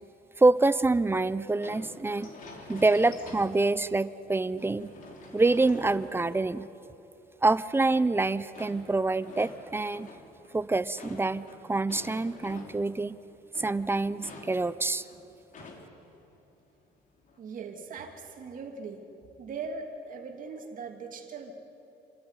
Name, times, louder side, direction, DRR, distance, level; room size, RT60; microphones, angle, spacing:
voice 1, 0.4-2.3 2.7-4.9 5.3-6.7 7.4-10.1 10.5-13.2 13.6-15.0, right 3 dB, 15° right, 16 dB, 0.6 m, -26 dB
sound 1, 1.6-3.9 4.3-6.9 7.9-13.0 13.3-16.1 16.4-16.5 17.0-17.4, left 3 dB, 50° left, 3.1 m, -48 dB
voice 2, 17.4-19.0 19.4-21.5, right 4 dB, 50° right, 3 dB, 2.8 m, -40 dB
27.5 x 13.0 x 9.8 m, 2.9 s
cardioid pair, 110°, 17 cm